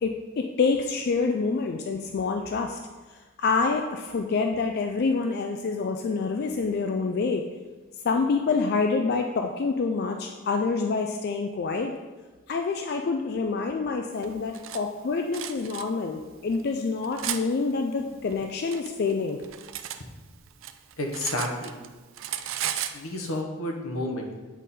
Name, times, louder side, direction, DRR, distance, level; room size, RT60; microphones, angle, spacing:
voice 1, 0.0-2.8 3.4-7.4 8.0-11.9 12.5-19.4, left 4 dB, 50° left, 4 dB, 0.3 m, -27 dB
Cutlery silverware, 14.2-14.8 15.3-15.8 16.5-17.4 18.3-20.0 20.3-21.9 22.1-23.0, right 11 dB, 65° right, 0.4 m, -34 dB
voice 2, 21.0-21.8 22.9-24.4, left 1 dB, 80° left, 2 dB, 1.0 m, -31 dB
8.2 x 3.7 x 4.1 m, 1.3 s
head